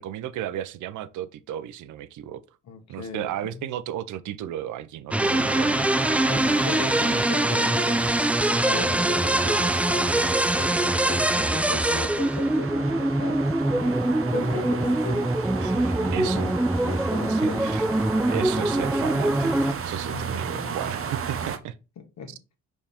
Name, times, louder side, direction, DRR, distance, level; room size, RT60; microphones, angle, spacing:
voice 1, 0.0-2.4 2.9-5.7 15.6-16.5 17.3-17.9 18.3-21.7, right 11 dB, 75° right, 0.7 m, -34 dB
voice 2, 2.7-3.7 6.2-8.0 8.6-10.2 10.6-13.4 13.7-15.3 16.0-17.6 20.1-20.8 22.0-22.4, left 5 dB, 65° left, 1.6 m, -37 dB
sound 1, 5.1-19.7, right 1 dB, 5° right, 0.4 m, -23 dB
sound 2, 5.2-21.6, right 6 dB, 45° right, 1.0 m, -34 dB
5.4 x 4.6 x 4.3 m
cardioid pair, 90°, 30 cm